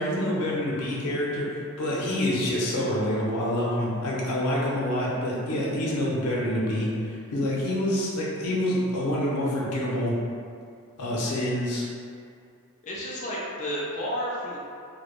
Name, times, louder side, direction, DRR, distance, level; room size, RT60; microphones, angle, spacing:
voice 1, 0.0-6.9 7.3-10.2 11.0-11.8, left 1 dB, 90° left, -5 dB, 0.6 m, -27 dB
voice 2, 12.8-14.6, equal, 35° left, -6 dB, 0.4 m, -31 dB
2.2 x 2.0 x 3.0 m, 2.3 s
head